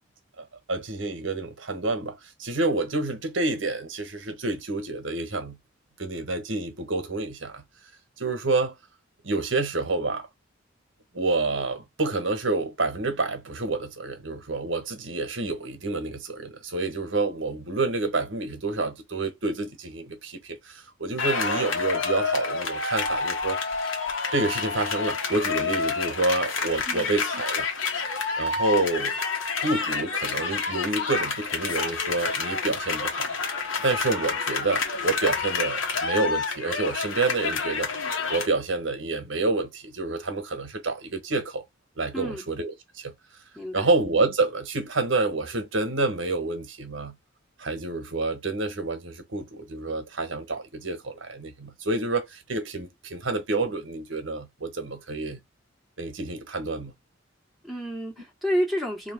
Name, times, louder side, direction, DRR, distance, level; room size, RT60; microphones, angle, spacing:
voice 1, 0.4-5.6 6.0-7.6 8.2-8.7 9.2-10.3 11.1-23.7 24.3-27.7 28.4-29.2 29.6-33.3 33.8-37.9 38.3-41.6 42.0-43.1 43.7-47.2 47.6-55.4 56.0-56.9, right 3 dB, 80° right, 1.3 m, -28 dB
sound 1, 21.2-38.5, left 4 dB, 85° left, 1.3 m, -28 dB
voice 2, 42.1-42.5 43.6-43.9 57.6-59.1, equal, ahead, 1.7 m, -30 dB
3.1 x 2.9 x 4.5 m
head